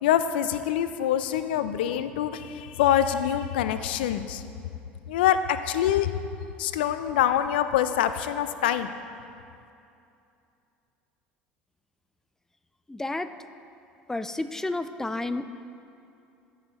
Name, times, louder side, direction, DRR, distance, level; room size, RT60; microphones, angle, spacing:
voice 1, 0.0-4.4 5.1-6.1 6.6-8.9, left 10 dB, 80° left, 11 dB, 0.3 m, -25 dB
voice 2, 12.9-13.3 14.1-15.4, left 2 dB, 10° left, 11 dB, 0.4 m, -30 dB
14.5 x 5.7 x 2.9 m, 2.6 s
hypercardioid pair, 70°, 5 cm